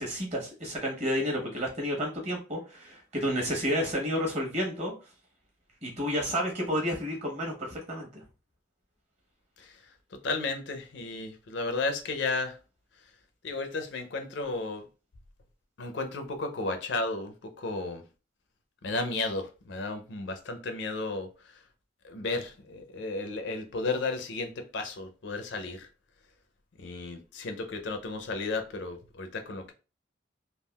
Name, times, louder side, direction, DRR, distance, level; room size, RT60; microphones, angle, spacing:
voice 1, 0.0-4.9 5.8-8.2, equal, 35° right, 1.0 m, -31 dB
voice 2, 9.6-12.6 13.4-14.9 15.8-18.0 18.8-21.6 22.0-25.9 26.8-29.7, left 3 dB, 70° left, 0.5 m, -33 dB
3.5 x 2.3 x 2.2 m
head